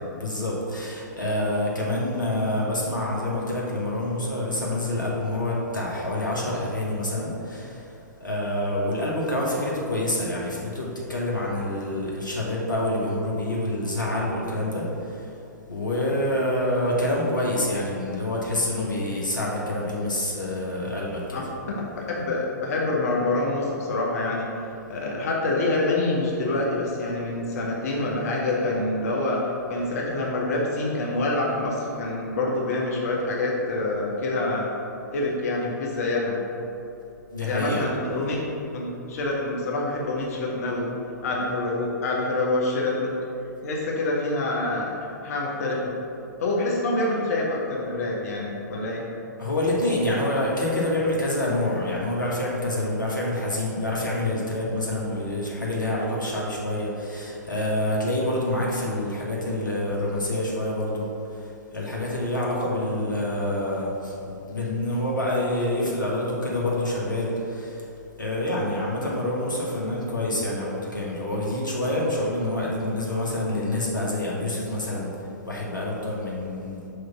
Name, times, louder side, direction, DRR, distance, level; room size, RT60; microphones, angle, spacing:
voice 1, 0.1-7.9 8.2-15.3 15.7-21.4 37.3-37.9 49.4-64.1 64.5-67.9 68.2-75.1 75.4-76.9, left 1 dB, 85° left, -4 dB, 1.3 m, -27 dB
voice 2, 22.1-24.5 24.9-29.4 29.7-34.7 35.1-36.4 37.4-38.4 38.7-40.9 41.2-43.1 43.6-44.9 45.2-45.9 46.4-49.0, left 2 dB, 55° left, -3 dB, 1.1 m, -26 dB
6.5 x 3.2 x 5.8 m, 2.8 s
figure-of-eight pair, 115°, 10 cm